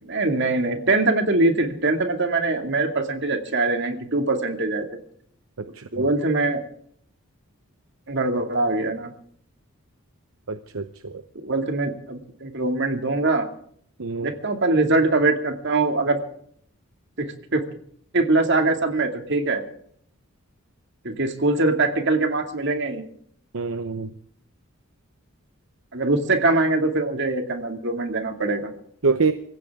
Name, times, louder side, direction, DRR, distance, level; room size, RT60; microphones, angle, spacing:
voice 1, 0.0-4.9 5.9-6.6 8.1-9.1 11.4-13.5 14.2-16.2 17.2-17.6 18.1-19.6 21.0-23.0 25.9-28.7, right 2 dB, 55° right, 5 dB, 2.4 m, -22 dB
voice 2, 10.5-11.2 14.0-14.3 23.5-24.1 29.0-29.3, right 4 dB, 75° right, 10 dB, 0.8 m, -25 dB
25.0 x 15.5 x 3.7 m, 0.63 s
head